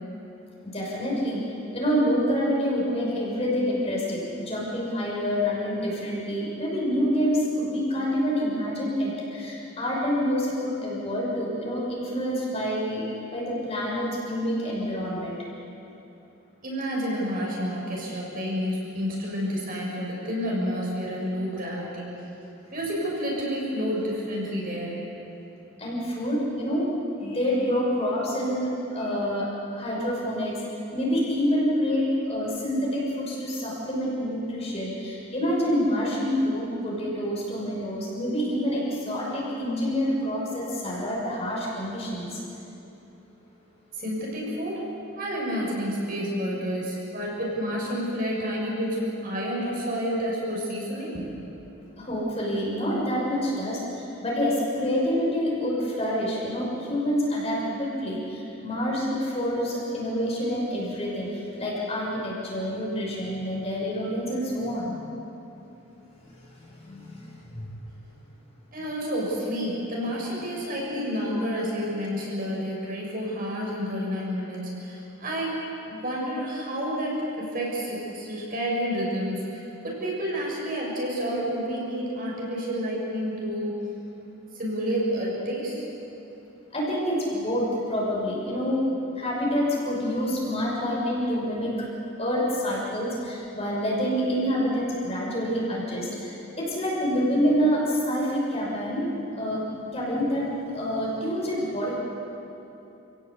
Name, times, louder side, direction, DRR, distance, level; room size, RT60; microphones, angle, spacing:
voice 1, 0.7-1.4 1.7-13.0 13.3-15.3 25.8-26.9 27.2-29.5 29.7-30.5 30.9-42.4 52.0-61.3 61.6-64.9 66.7-67.2 67.5-67.7 86.7-88.9 89.2-91.7 92.2-99.1 99.4-99.6 99.9-100.5 100.7-102.0, equal, 30° left, -4 dB, 6.0 m, -27 dB
voice 2, 16.6-22.1 22.7-25.0 43.9-44.9 45.2-51.3 68.7-83.7 84.5-85.9, equal, 40° right, -4 dB, 7.2 m, -29 dB
29.0 x 18.0 x 8.4 m, 2.9 s
head